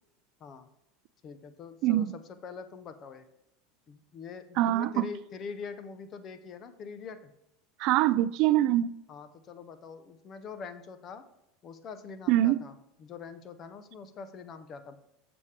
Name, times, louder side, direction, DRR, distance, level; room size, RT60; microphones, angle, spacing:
voice 1, 1.2-3.3 3.9-7.3 9.1-11.2 11.6-15.0, left 5 dB, 35° left, 0.6 m, -44 dB
voice 2, 1.8-2.1 4.6-5.0 7.8-8.9 12.3-12.6, right 14 dB, 55° right, 0.3 m, -24 dB
7.1 x 6.9 x 3.3 m
supercardioid pair, 140°, 0 cm